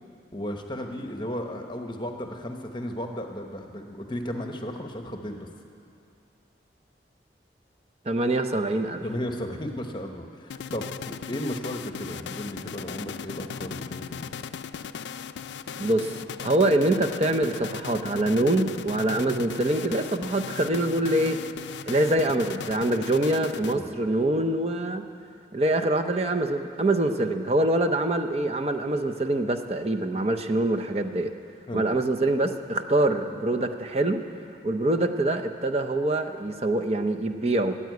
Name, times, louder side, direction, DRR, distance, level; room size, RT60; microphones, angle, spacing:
voice 1, 0.3-5.5 9.0-14.3 23.7-23.9 31.7-31.8, equal, 25° left, 4 dB, 0.9 m, -34 dB
voice 2, 8.1-9.0 15.8-16.1 16.4-21.4 21.9-25.1 25.5-31.3 31.7-34.2 34.6-37.8, right 1 dB, 35° right, 6 dB, 0.6 m, -24 dB
sound 1, 10.5-24.1, left 7 dB, 80° left, 0.4 m, -37 dB
14.0 x 8.6 x 9.3 m, 2.5 s
head